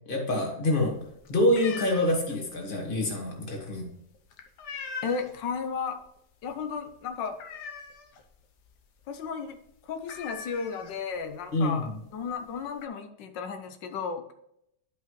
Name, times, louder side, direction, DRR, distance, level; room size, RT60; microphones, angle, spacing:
voice 1, 0.1-0.9 1.3-3.9 11.5-11.8, left 1 dB, 30° left, 0 dB, 2.0 m, -26 dB
sound 1, 0.7-5.5 5.8-6.2 6.5-6.6 6.9-8.3 8.6-8.8 9.0-9.2 9.5-9.6 10.0-11.3 12.1-12.2 12.4-12.9, left 5 dB, 70° left, 1.5 m, -41 dB
voice 2, 5.0-6.0 6.4-7.4 9.1-14.3, left 6 dB, 90° left, 7 dB, 1.5 m, -34 dB
11.0 x 5.5 x 3.1 m, 0.76 s
omnidirectional pair, 1.9 m